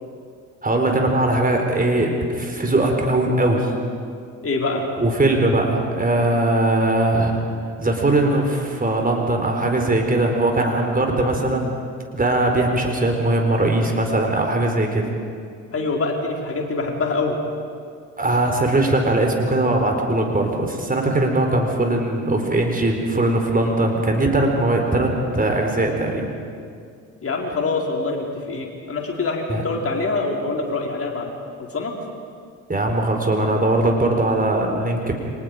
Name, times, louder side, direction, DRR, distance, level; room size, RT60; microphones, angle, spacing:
voice 1, 0.6-3.7 5.0-7.3 7.8-11.7 12.1-15.0 18.2-26.3 29.5-29.6 32.7-35.2, right 2 dB, 20° right, 2 dB, 4.5 m, -20 dB
voice 2, 4.4-4.8 15.7-17.4 27.2-31.3 31.6-31.9, left 3 dB, 35° left, 0 dB, 4.7 m, -25 dB
30.0 x 25.0 x 5.2 m, 2.2 s
figure-of-eight pair, 50°, 41 cm